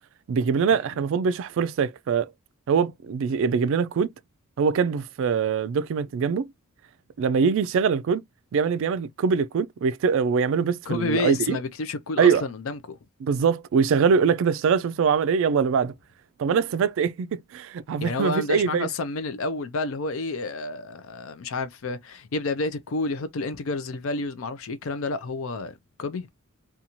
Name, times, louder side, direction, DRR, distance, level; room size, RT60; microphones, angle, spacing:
voice 1, 0.3-2.3 2.7-4.1 4.6-6.5 7.2-8.2 8.5-11.6 12.2-12.4 13.2-15.9 16.4-18.9, right 6 dB, 60° right, 0.3 m, -23 dB
voice 2, 10.9-13.0 18.0-26.3, left 3 dB, 65° left, 0.4 m, -30 dB
2.6 x 2.3 x 2.8 m
head